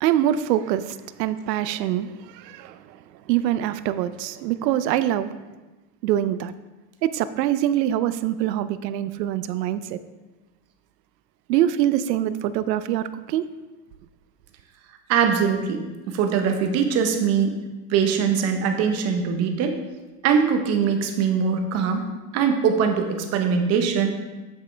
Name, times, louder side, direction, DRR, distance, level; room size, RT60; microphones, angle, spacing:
voice 1, 0.0-3.0 3.3-5.3 6.0-6.5 7.0-10.0 11.5-13.5, right 12 dB, 75° right, 13 dB, 0.7 m, -24 dB
voice 2, 15.1-17.5 17.9-19.8 20.2-22.0 22.3-24.1, right 6 dB, 30° right, 5 dB, 0.9 m, -22 dB
9.4 x 7.4 x 3.4 m, 1.2 s
supercardioid pair, 155°, 49 cm